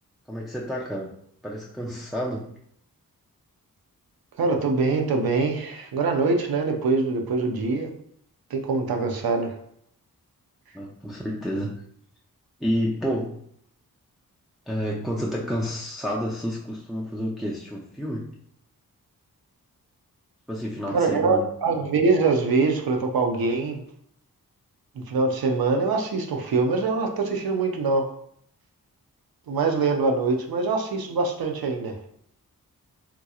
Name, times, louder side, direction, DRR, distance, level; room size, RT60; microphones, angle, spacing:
voice 1, 0.3-1.1 1.4-2.5 10.7-11.8 12.6-13.4 14.7-18.4 20.5-21.5, equal, ahead, -2 dB, 0.4 m, -30 dB
voice 2, 4.4-8.0 8.5-9.6 20.9-23.8 25.0-28.1 29.5-31.9, right 4 dB, 80° right, 3 dB, 0.6 m, -24 dB
3.7 x 2.8 x 2.3 m, 0.69 s
cardioid pair, 60°, 36 cm